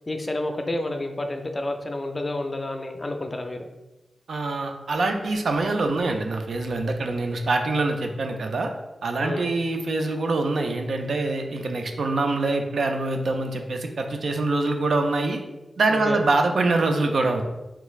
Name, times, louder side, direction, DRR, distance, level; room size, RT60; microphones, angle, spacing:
voice 1, 0.1-3.7 9.2-9.5 15.9-16.2, left 2 dB, 35° left, 5 dB, 0.4 m, -29 dB
voice 2, 4.3-8.7 9.0-15.4 15.8-17.4, right 2 dB, 75° right, 4 dB, 0.4 m, -24 dB
3.4 x 3.1 x 2.3 m, 1.0 s
cardioid pair, 60°, 0 cm